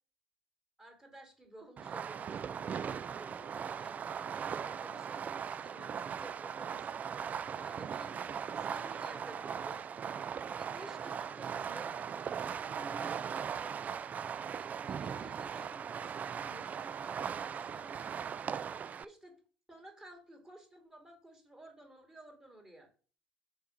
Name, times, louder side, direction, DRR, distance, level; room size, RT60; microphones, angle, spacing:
voice 1, 0.8-9.9 10.5-12.0 12.4-13.8 14.5-18.0 18.9-19.4 19.7-22.9, right 1 dB, 15° right, 3 dB, 2.4 m, -54 dB
Fireworks, 1.8-19.0, right 7 dB, 35° right, 0.3 m, -39 dB
5.4 x 4.6 x 5.1 m, 0.40 s
figure-of-eight pair, 65°, 5 cm